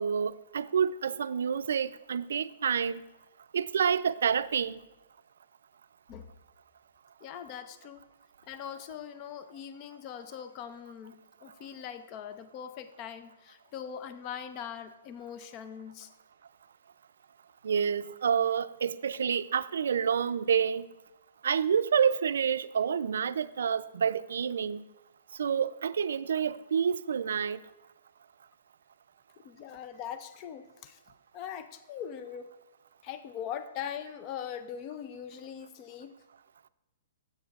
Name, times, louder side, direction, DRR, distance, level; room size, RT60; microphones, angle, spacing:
voice 1, 0.0-3.0 3.5-4.8 17.6-20.9 21.4-24.8 25.4-27.6, right 7 dB, 80° right, 0.4 m, -28 dB
voice 2, 7.2-8.0 8.4-16.1 29.4-31.0 31.3-32.5 33.0-36.2, left 8 dB, 25° left, 0.4 m, -41 dB
15.0 x 8.0 x 2.4 m
hypercardioid pair, 170°, 0 cm